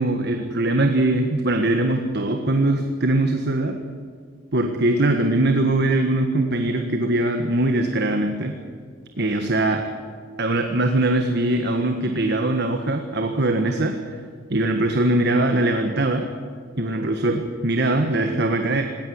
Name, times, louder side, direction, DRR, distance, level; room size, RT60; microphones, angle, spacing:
voice 1, 0.0-3.8 4.5-8.6 9.2-9.8 10.4-14.0 14.5-16.3 16.8-18.8, right 2 dB, 55° right, 5 dB, 1.6 m, -21 dB
19.5 x 18.0 x 9.6 m, 2.1 s
head